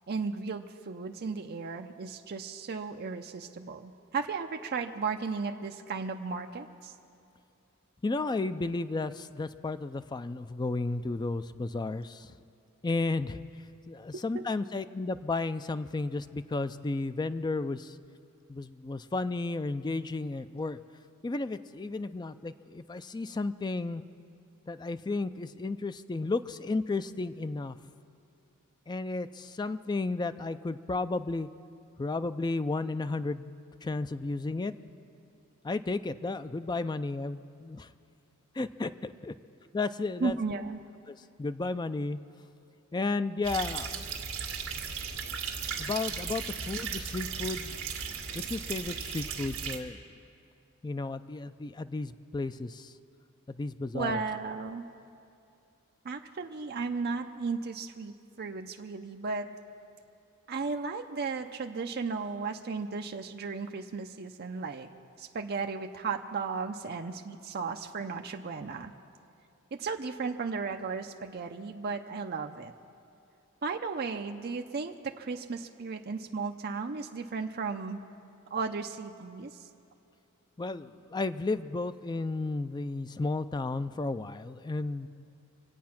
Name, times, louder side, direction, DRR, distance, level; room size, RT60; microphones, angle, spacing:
voice 1, 0.1-6.9 14.1-14.5 40.2-40.8 53.9-54.8 56.0-59.5 60.5-64.9 65.2-68.9 69.8-72.7 73.6-78.0 78.5-79.7, right 4 dB, 45° right, 4 dB, 0.5 m, -35 dB
voice 2, 8.0-12.4 12.8-13.4 13.9-18.0 18.5-20.8 21.2-24.0 24.7-27.8 28.9-31.5 32.0-34.7 35.6-37.9 38.5-39.3 39.7-40.4 41.1-42.2 42.9-44.0 44.7-44.9 45.8-47.8 48.3-50.0 50.8-52.9 53.5-54.2 80.6-85.1, left 3 dB, 20° left, 12 dB, 0.3 m, -33 dB
sound 1, 43.4-49.8, right 6 dB, 65° right, 1.7 m, -36 dB
25.5 x 8.5 x 5.9 m, 2.6 s
head